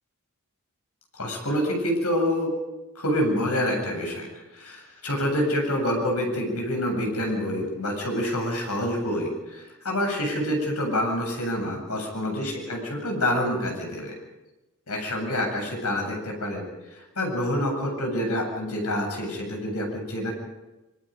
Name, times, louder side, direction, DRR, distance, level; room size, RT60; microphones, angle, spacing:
voice 1, 1.1-2.5 2.9-12.8 13.0-14.1 14.9-16.6 16.9-20.3, left 1 dB, 85° left, 2 dB, 7.8 m, -27 dB
26.5 x 23.0 x 5.2 m, 1.0 s
head